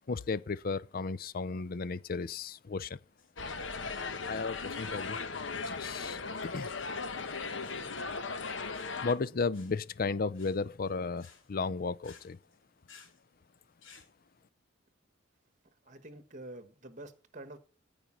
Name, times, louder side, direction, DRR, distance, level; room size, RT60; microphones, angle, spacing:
voice 1, 0.1-3.0 4.3-5.2 5.7-6.7 9.0-12.4, left 4 dB, 50° left, 0.5 m, -34 dB
sound 1, 3.0-14.1, left 5 dB, 90° left, 2.7 m, -61 dB
sound 2, 3.4-9.1, left 4 dB, 70° left, 1.1 m, -37 dB
voice 2, 15.8-17.6, right 2 dB, 40° right, 1.2 m, -47 dB
14.0 x 5.2 x 7.3 m
head